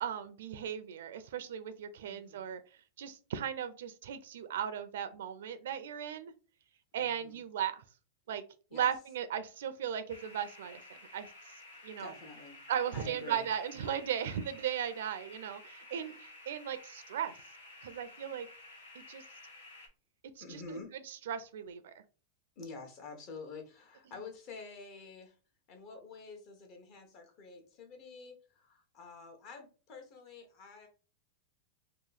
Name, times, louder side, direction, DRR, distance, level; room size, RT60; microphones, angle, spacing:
voice 1, 0.0-2.6 3.0-6.3 6.9-7.8 8.3-8.4 8.7-11.3 11.8-12.1 12.7-17.3 17.8-18.5 18.9-19.2 20.4-21.9, right 9 dB, 80° right, 12 dB, 0.5 m, -37 dB
voice 2, 2.0-2.5 7.0-7.4 8.7-8.9 12.0-12.6 12.9-13.5 15.9-16.2 20.4-21.0 22.6-25.4 25.7-30.9, left 4 dB, 40° left, 3 dB, 1.0 m, -48 dB
sound 1, 10.1-19.9, left 2 dB, 85° left, 1.2 m, -53 dB
3.0 x 2.3 x 3.9 m, 0.36 s
supercardioid pair, 145°, 0 cm